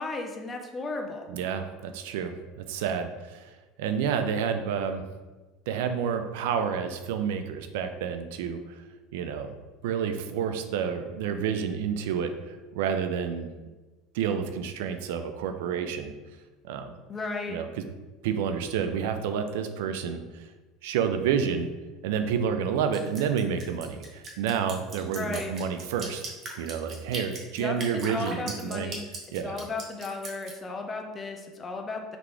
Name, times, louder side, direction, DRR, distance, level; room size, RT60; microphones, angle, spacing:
voice 1, 0.0-1.3 17.1-17.6 25.1-25.5 27.6-29.1 29.4-32.2, left 3 dB, 25° left, 3 dB, 0.6 m, -35 dB
voice 2, 1.3-3.5 3.8-5.1 5.7-8.8 9.1-9.5 9.8-13.5 14.1-16.1 16.6-17.0 17.5-17.7 18.2-20.4 20.8-21.7 22.0-28.9 29.3-29.6, right 7 dB, 80° right, 8 dB, 0.4 m, -29 dB
Drip, 22.9-30.5, right 2 dB, 40° right, 0.9 m, -39 dB
4.0 x 2.9 x 3.3 m, 1.2 s
supercardioid pair, 120°, 0 cm